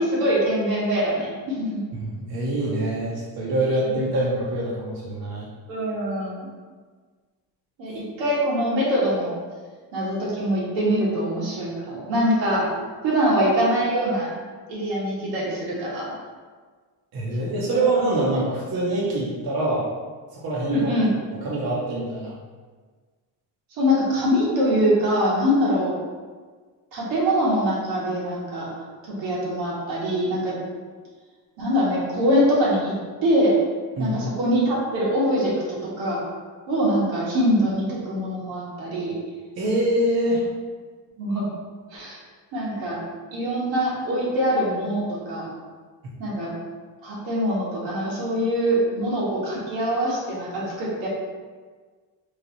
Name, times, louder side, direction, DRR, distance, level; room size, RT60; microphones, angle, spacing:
voice 1, 0.0-1.8 3.9-4.0 5.7-6.5 7.8-9.3 9.9-12.7 13.0-14.3 14.7-16.1 17.4-17.8 20.7-21.2 23.7-25.9 26.9-28.7 29.0-30.6 31.6-33.6 34.0-36.2 36.7-39.2 41.2-41.5 41.9-42.2 42.5-43.0 43.3-45.5 46.2-46.5 47.0-51.1, equal, 75° right, -6 dB, 1.4 m, -23 dB
voice 2, 1.9-5.5 17.1-19.9 20.4-20.9 21.3-22.4 34.0-34.2 39.6-40.5, right 1 dB, 50° right, -6 dB, 0.9 m, -25 dB
3.2 x 2.3 x 3.9 m, 1.5 s
supercardioid pair, 80°, 45 cm